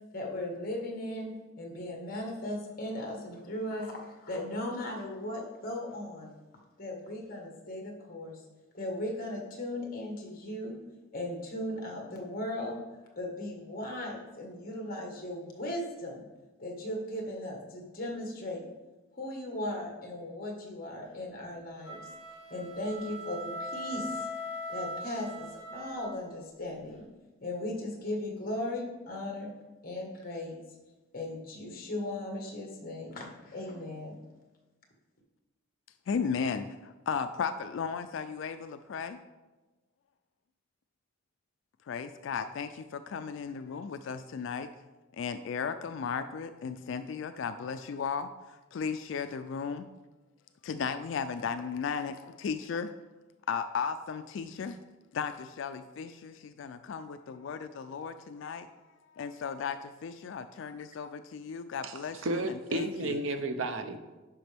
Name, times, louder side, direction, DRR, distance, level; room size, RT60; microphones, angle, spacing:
voice 1, 0.1-6.3 6.8-8.4 8.7-10.8 11.1-12.8 13.1-16.2 16.6-18.7 19.1-22.0 22.5-24.3 24.7-27.0 27.4-29.5 29.8-30.6 31.1-34.2, left 1 dB, 45° left, 1 dB, 1.6 m, -37 dB
sound 1, 21.8-26.3, left 1 dB, 20° left, 2.3 m, -40 dB
voice 2, 36.1-39.2 41.9-44.7 45.2-49.9 50.6-52.9 53.5-54.8 55.1-58.7 59.2-63.2, left 6 dB, 65° left, 10 dB, 0.3 m, -35 dB
voice 3, 62.2-64.0, right 2 dB, 70° right, 7 dB, 0.7 m, -32 dB
10.0 x 5.8 x 3.5 m, 1.2 s
head